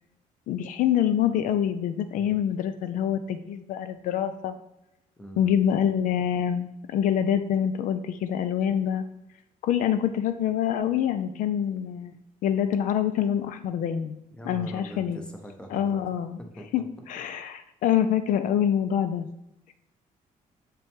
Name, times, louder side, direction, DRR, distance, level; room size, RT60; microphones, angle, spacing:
voice 1, 0.5-4.6 5.4-9.0 9.6-14.2 14.5-15.2 15.7-16.4 16.7-16.8 17.1-19.3, left 9 dB, 65° left, 10 dB, 0.4 m, -26 dB
voice 2, 5.2-5.6 14.3-16.0 16.4-16.8, equal, 5° left, 3 dB, 0.7 m, -42 dB
6.8 x 5.4 x 3.6 m, 0.87 s
cardioid pair, 180°, 14 cm